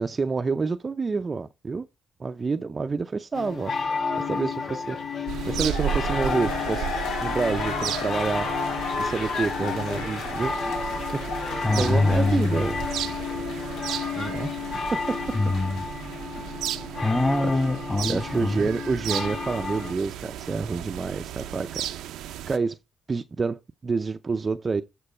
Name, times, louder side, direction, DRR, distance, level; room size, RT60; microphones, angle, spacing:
voice 1, 0.0-1.9 2.2-3.7 4.3-5.0 5.5-6.9 7.2-8.5 9.0-10.5 11.7-12.8 14.2-14.5 14.9-15.2 17.4-17.6 18.1-21.8 22.5-22.8 23.1-24.8, right 4 dB, 30° right, 0.5 m, -28 dB
sound 1, 3.3-19.9, left 4 dB, 65° left, 3.9 m, -32 dB
sound 2, 5.3-16.2 16.5-16.6, left 4 dB, 85° left, 2.0 m, -34 dB
sound 3, 5.3-22.6, right 11 dB, 85° right, 0.5 m, -35 dB
voice 2, 11.6-12.6 14.4-14.5 15.3-15.8 17.0-18.7, left 2 dB, 15° left, 1.7 m, -24 dB
11.5 x 4.5 x 4.3 m
cardioid pair, 90°, 0 cm